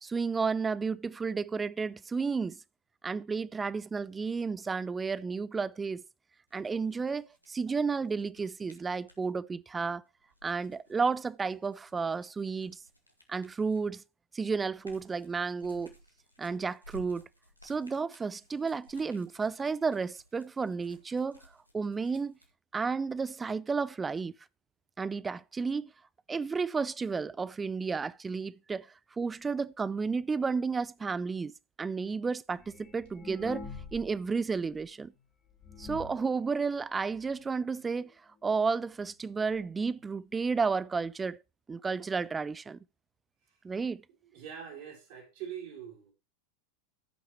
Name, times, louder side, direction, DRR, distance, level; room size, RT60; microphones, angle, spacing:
voice 1, 0.0-2.6 3.0-6.0 6.5-10.0 10.4-12.8 13.3-14.0 14.3-15.9 16.4-17.3 17.6-21.4 21.7-22.3 22.7-24.3 25.0-25.9 26.3-28.9 29.2-35.1 35.8-38.1 38.4-41.4 41.7-42.8 43.6-44.0, right 5 dB, 15° right, 0.4 m, -32 dB
sound 1, 6.5-9.3 10.2-14.0 14.4-22.5, equal, 90° left, 2.0 m, -57 dB
sound 2, 32.6-34.2 34.5-34.6 35.2-35.3 35.6-36.3 37.0-37.1 37.4-37.5 37.8-38.1 38.9-39.0 39.3-39.4 40.0-40.1 40.3-40.4, left 4 dB, 30° left, 2.6 m, -44 dB
voice 2, 44.3-46.1, right 8 dB, 50° right, 4.5 m, -43 dB
15.0 x 5.8 x 3.1 m
figure-of-eight pair, 90°, 0 cm